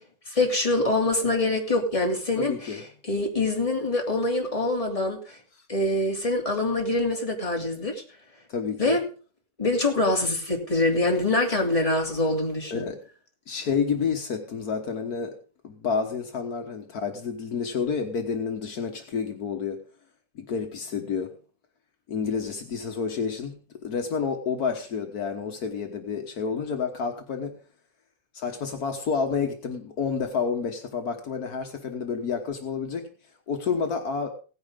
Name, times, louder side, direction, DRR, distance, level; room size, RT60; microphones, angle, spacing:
voice 1, 0.3-5.4 5.7-8.0 8.8-9.0 9.6-12.9, left 2 dB, 10° left, 1 dB, 2.5 m, -25 dB
voice 2, 2.4-2.8 8.5-9.0 12.7-13.0 13.5-15.4 15.6-19.8 20.3-21.3 22.1-27.6 28.3-33.1 33.5-34.3, left 5 dB, 75° left, 5 dB, 0.8 m, -29 dB
17.0 x 10.5 x 3.7 m, 0.37 s
omnidirectional pair, 3.5 m